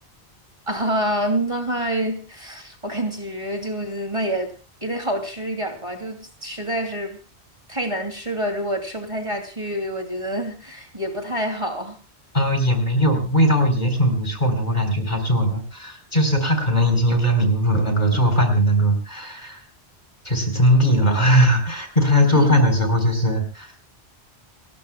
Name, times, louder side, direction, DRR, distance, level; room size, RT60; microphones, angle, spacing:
voice 1, 0.7-4.5 4.8-7.2 7.7-12.0 22.2-22.6, right 1 dB, 30° right, 4 dB, 2.9 m, -27 dB
voice 2, 12.3-19.6 20.2-23.7, equal, 40° left, 5 dB, 4.2 m, -19 dB
30.0 x 14.5 x 2.3 m, 0.33 s
omnidirectional pair, 1.1 m